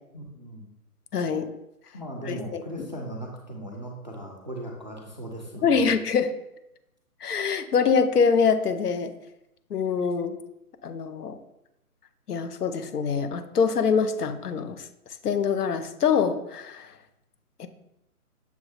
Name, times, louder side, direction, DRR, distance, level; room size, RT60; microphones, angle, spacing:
voice 1, 0.1-0.7 1.9-5.9, right 1 dB, 35° right, 1 dB, 0.4 m, -38 dB
voice 2, 1.1-1.5 2.3-2.9 5.6-6.3 7.2-9.1 9.7-10.4 10.8-11.4 12.3-14.8 15.2-16.9 17.6-17.7, left 6 dB, 85° left, 9 dB, 0.8 m, -24 dB
6.8 x 2.5 x 3.0 m, 0.86 s
hypercardioid pair, 165°, 45 cm